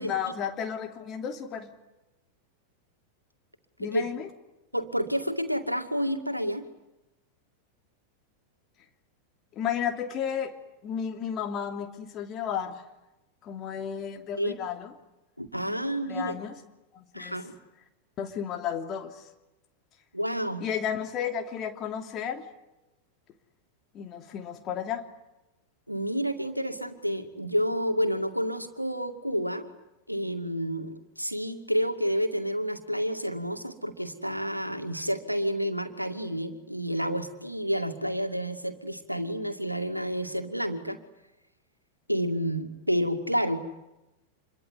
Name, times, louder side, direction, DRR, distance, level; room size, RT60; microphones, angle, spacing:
voice 1, 0.0-1.7 3.8-4.3 9.5-10.6 10.8-12.8 13.4-14.9 15.7-15.8 16.1-16.6 16.9-17.3 18.2-19.2 20.6-22.4 23.9-25.1, left 8 dB, 30° left, 5 dB, 2.9 m, -33 dB
voice 2, 4.7-6.7 14.4-14.5 15.4-16.3 17.1-17.5 20.1-20.6 25.9-29.7 30.1-41.0 42.1-43.6, equal, 90° right, 8 dB, 2.2 m, -29 dB
27.0 x 22.5 x 9.8 m, 0.97 s
figure-of-eight pair, 90°, 0 cm